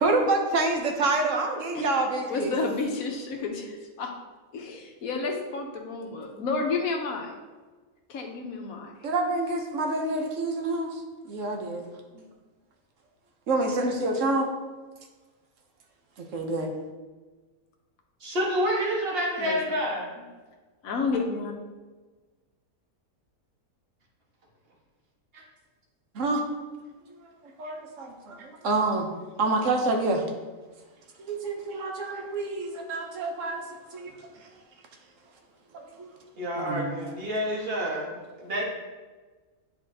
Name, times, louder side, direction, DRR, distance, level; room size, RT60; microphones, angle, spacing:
voice 1, 0.0-2.6 9.0-11.8 12.1-12.2 13.5-14.5 16.2-16.7 26.1-26.4 27.6-29.1 29.4-30.2 31.2-33.6 33.9-34.3 35.7-36.1 36.6-37.0, right 2 dB, 65° right, 3 dB, 1.2 m, -27 dB
voice 2, 2.3-4.1 4.5-7.3 8.1-8.9 19.4-19.6 20.8-21.5, left 4 dB, 80° left, 2 dB, 1.4 m, -31 dB
voice 3, 18.2-20.1 25.3-25.4 36.4-38.6, equal, 45° right, -3 dB, 1.5 m, -28 dB
9.6 x 4.3 x 2.7 m, 1.3 s
omnidirectional pair, 1.5 m